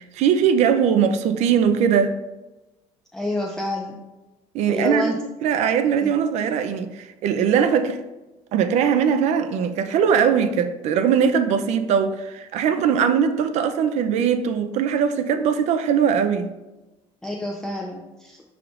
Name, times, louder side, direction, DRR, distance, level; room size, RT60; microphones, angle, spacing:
voice 1, 0.0-2.1 4.5-5.1 5.4-8.0 8.5-16.5, right 7 dB, 60° right, 0.5 m, -20 dB
voice 2, 3.1-4.0 4.7-5.2 6.0-6.1 17.2-18.4, left 1 dB, 5° left, 0.5 m, -28 dB
10.5 x 3.6 x 2.5 m
cardioid pair, 145°, 13 cm